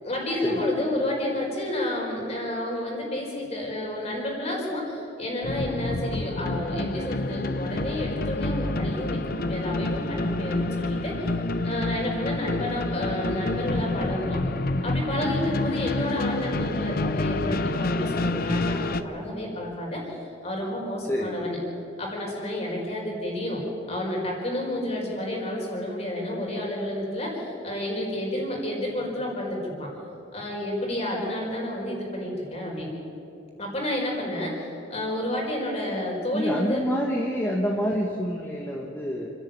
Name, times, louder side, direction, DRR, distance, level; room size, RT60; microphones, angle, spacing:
voice 1, 0.0-11.3 11.6-14.4 14.8-21.6 22.0-23.6 23.9-29.9 30.3-32.9 33.6-36.8, left 1 dB, 30° left, -1 dB, 4.9 m, -30 dB
sound 1, 5.4-19.0, left 2 dB, 50° left, 0.8 m, -28 dB
voice 2, 36.3-39.3, equal, 10° left, -2 dB, 1.5 m, -27 dB
29.5 x 11.0 x 8.9 m, 2.8 s
head